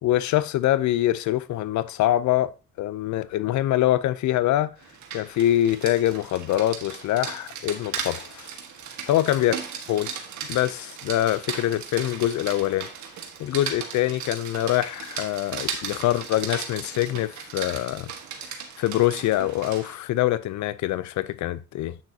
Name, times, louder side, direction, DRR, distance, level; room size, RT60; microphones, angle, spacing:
voice 1, 0.0-4.7 5.1-8.5 9.1-9.6 9.9-10.1 10.5-12.9 13.4-18.1 18.4-22.0, left 14 dB, 70° left, 0.5 m, -24 dB
Rain, 4.8-20.0, right 7 dB, 70° right, 1.5 m, -36 dB
8.6 x 6.4 x 2.7 m
cardioid pair, 90°, 30 cm